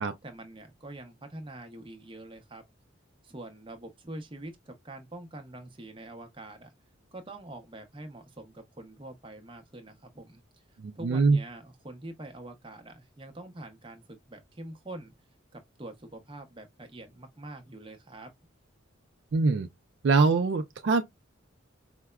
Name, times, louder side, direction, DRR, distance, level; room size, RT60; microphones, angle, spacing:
voice 1, 0.2-2.6 3.2-6.7 7.1-10.4 11.0-15.1 15.5-18.3, right 1 dB, 25° right, 0.7 m, -45 dB
voice 2, 10.8-11.4 19.3-19.7 20.0-21.0, right 4 dB, 60° right, 0.4 m, -23 dB
4.7 x 2.1 x 2.3 m
head